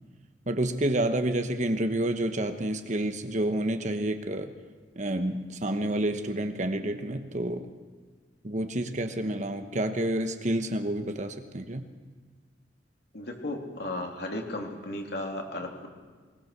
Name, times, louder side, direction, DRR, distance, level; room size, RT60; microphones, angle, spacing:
voice 1, 0.5-4.5 5.0-7.7 8.4-11.8, right 1 dB, 40° right, 8 dB, 1.1 m, -29 dB
voice 2, 13.1-15.9, left 1 dB, 60° left, 1 dB, 3.1 m, -35 dB
21.0 x 20.5 x 6.7 m, 1.4 s
head